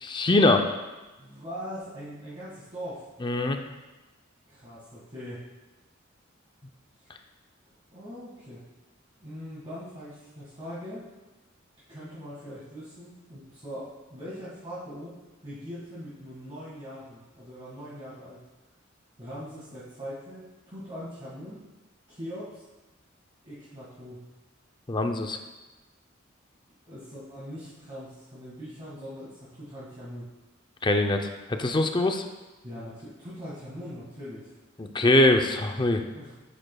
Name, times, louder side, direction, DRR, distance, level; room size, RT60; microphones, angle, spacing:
voice 1, 0.0-0.6 3.2-3.6 24.9-25.4 30.8-32.2 34.8-36.0, left 2 dB, 25° left, 5 dB, 0.5 m, -23 dB
voice 2, 1.2-3.0 4.5-5.4 7.9-8.6 9.2-11.0 11.9-18.4 19.2-21.6 22.1-22.6 23.4-24.2 26.8-30.3 32.6-34.5 36.1-36.3, equal, 30° right, -10 dB, 1.9 m, -41 dB
11.0 x 7.7 x 2.3 m, 1.1 s
head